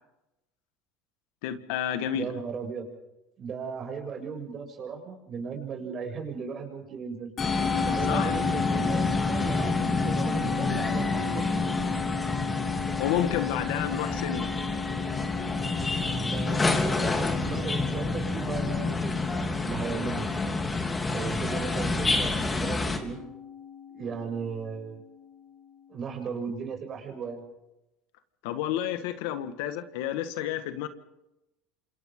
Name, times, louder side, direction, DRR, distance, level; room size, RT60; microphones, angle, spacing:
voice 1, 1.4-2.3 8.1-8.3 13.0-14.5 28.4-30.9, left 10 dB, 80° left, 10 dB, 1.8 m, -30 dB
voice 2, 2.1-2.8 3.4-7.3 7.8-11.5 16.2-19.2 19.6-20.3 21.1-23.2 23.9-25.0 25.9-27.4, right 6 dB, 40° right, 3 dB, 7.3 m, -36 dB
Musical instrument, 7.4-25.9, left 7 dB, 40° left, 3.6 m, -35 dB
sound 1, 7.4-23.0, left 3 dB, 20° left, 3.3 m, -28 dB
28.0 x 27.0 x 3.9 m, 0.92 s
supercardioid pair, 100°, 0 cm